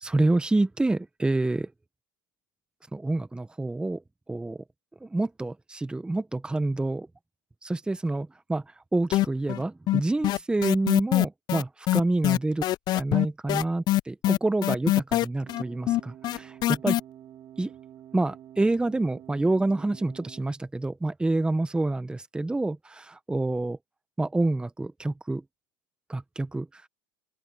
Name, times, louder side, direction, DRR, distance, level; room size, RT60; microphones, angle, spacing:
voice 1, 0.0-1.7 2.9-4.0 4.3-4.6 5.0-7.1 7.6-8.6 8.9-12.6 12.9-16.9 17.6-17.7 18.1-23.8 24.2-25.4 26.1-26.7, right 2 dB, 10° right, 1.2 m, -27 dB
sound 1, 9.1-9.6 9.9-17.0, left 15 dB, 40° left, 0.4 m, -23 dB
sound 2, 15.5-20.5, right 11 dB, 40° right, 4.6 m, -48 dB
open air
hypercardioid pair, 100°, 11 cm